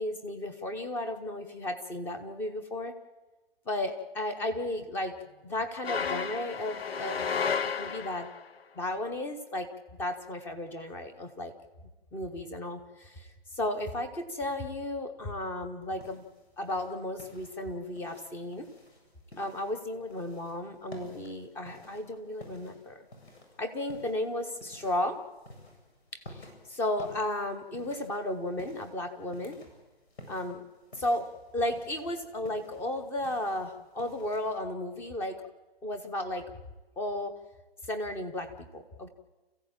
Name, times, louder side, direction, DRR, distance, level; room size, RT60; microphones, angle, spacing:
voice 1, 0.0-2.9 3.7-5.2 5.4-7.3 7.6-8.3 8.7-9.7 10.0-11.5 12.1-13.3 13.5-16.2 16.6-18.7 19.4-23.1 23.6-25.2 26.1-29.6 30.3-30.6 30.9-31.3 31.5-35.4 35.8-36.5 37.0-37.3 37.9-39.1, left 1 dB, 5° left, 8 dB, 0.8 m, -34 dB
sound 1, 5.8-8.5, left 6 dB, 65° left, 1.1 m, -32 dB
sound 2, 16.0-34.5, left 1 dB, 85° left, 7.7 m, -53 dB
28.5 x 15.5 x 8.8 m, 1.2 s
hypercardioid pair, 160°, 32 cm